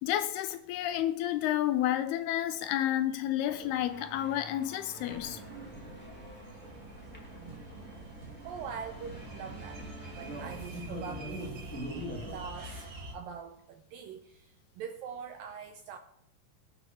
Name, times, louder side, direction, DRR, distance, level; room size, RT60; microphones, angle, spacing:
voice 1, 0.0-5.4, left 12 dB, 80° left, 2.5 m, -30 dB
sound 1, 3.4-12.4, equal, 5° left, 1.8 m, -45 dB
sound 2, 5.0-13.1, right 2 dB, 35° right, 3.6 m, -45 dB
voice 2, 8.4-9.8 10.1-11.8 12.3-12.8 13.1-16.0, right 7 dB, 80° right, 2.1 m, -43 dB
21.0 x 8.1 x 4.8 m
omnidirectional pair, 5.0 m